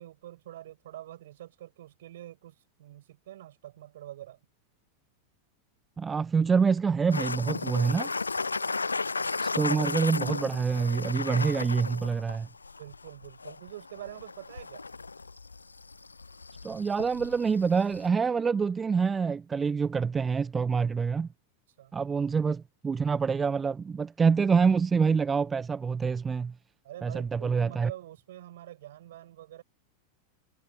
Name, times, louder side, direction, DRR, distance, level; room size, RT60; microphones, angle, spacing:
voice 1, 0.0-4.4 12.8-14.8 21.8-21.9 26.8-29.6, right 13 dB, 60° right, 7.0 m, -46 dB
voice 2, 6.0-8.1 9.4-12.5 16.6-21.3 21.9-26.5 27.0-27.9, right 5 dB, 15° right, 0.6 m, -26 dB
sound 1, 7.1-18.1, left 4 dB, 80° left, 0.5 m, -35 dB
figure-of-eight pair, 90°, 0 cm